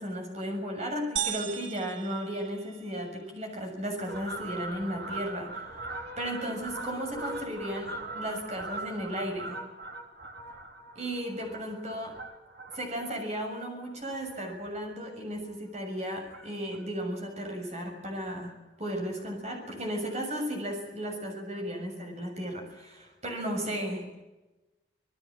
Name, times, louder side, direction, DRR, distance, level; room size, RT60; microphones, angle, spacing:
voice 1, 0.0-5.6 6.2-9.6 10.9-12.1 12.7-24.1, equal, 35° right, 3 dB, 6.8 m, -35 dB
sound 1, 1.2-3.1, right 10 dB, 85° right, 1.7 m, -36 dB
Fowl, 4.1-14.9 15.3-15.5 16.3-16.8 17.1-17.2 17.5-17.6 17.9-18.0 18.3-18.4 19.4-19.5 20.1-20.2, right 2 dB, 55° right, 3.5 m, -41 dB
27.0 x 19.0 x 7.4 m, 1.1 s
head